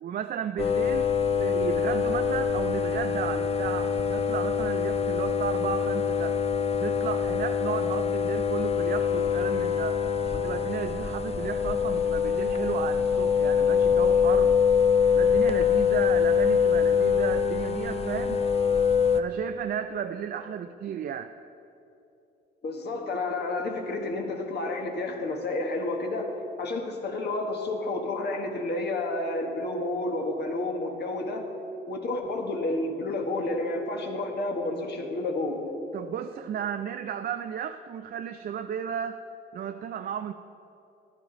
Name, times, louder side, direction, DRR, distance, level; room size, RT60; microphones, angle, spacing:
voice 1, 0.0-6.4 6.8-10.0 10.3-14.6 15.1-18.4 19.1-21.3 35.9-39.2 39.5-40.3, right 8 dB, 50° right, 8 dB, 0.4 m, -34 dB
sound 1, 0.6-19.2, left 6 dB, 30° left, 0.6 m, -24 dB
voice 2, 22.6-26.3 26.6-31.5 31.9-35.7, left 2 dB, 60° left, 2 dB, 1.5 m, -30 dB
14.0 x 10.5 x 4.0 m, 2.9 s
cardioid pair, 90°, 20 cm